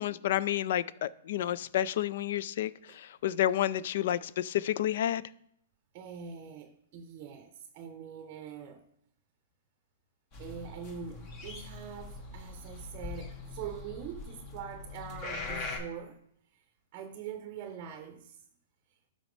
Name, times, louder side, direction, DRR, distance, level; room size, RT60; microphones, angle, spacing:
voice 1, 0.0-5.2, left 12 dB, 60° left, 0.3 m, -30 dB
voice 2, 5.9-8.8 10.4-16.2 16.5-16.6 16.9-18.4, right 7 dB, 40° right, 0.6 m, -43 dB
sound 1, 10.3-15.8, left 3 dB, 40° left, 1.8 m, -42 dB
12.0 x 4.1 x 3.2 m
hypercardioid pair, 135°, 0 cm